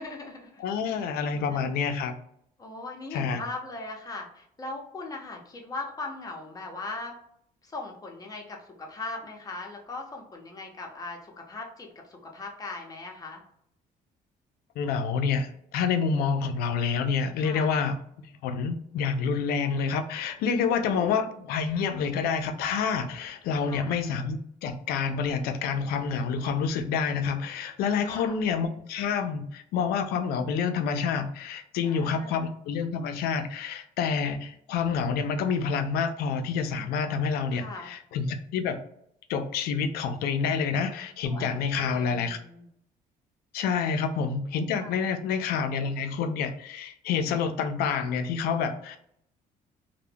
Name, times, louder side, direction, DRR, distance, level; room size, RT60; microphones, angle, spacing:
voice 1, 0.0-1.0 1.3-1.9 2.6-7.2 7.6-13.4 17.4-17.7 23.6-24.0 28.0-28.4 31.8-32.4 37.5-37.9 41.2-42.7 43.7-43.8 44.8-45.0, left 3 dB, 25° left, 0 dB, 0.7 m, -40 dB
voice 2, 0.6-2.1 3.1-3.4 14.8-18.0 18.4-38.8 39.3-42.4 43.5-49.0, left 6 dB, 80° left, 8 dB, 0.4 m, -28 dB
2.2 x 2.1 x 3.2 m, 0.70 s
cardioid pair, 120°, 16 cm